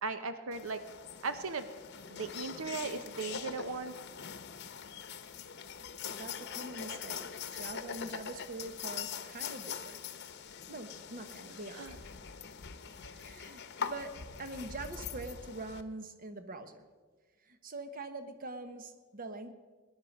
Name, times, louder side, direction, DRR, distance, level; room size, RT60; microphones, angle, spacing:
voice 1, 0.0-0.8 1.2-1.7 2.1-3.9 11.7-12.0, right 4 dB, 80° right, 10 dB, 0.8 m, -37 dB
sound 1, 0.5-15.8, left 7 dB, 55° left, 0.8 m, -43 dB
voice 2, 6.0-10.1 10.7-12.1 13.1-14.1 14.4-16.9 17.4-19.5, right 2 dB, 45° right, 9 dB, 1.1 m, -44 dB
20.0 x 10.5 x 5.3 m, 1.4 s
head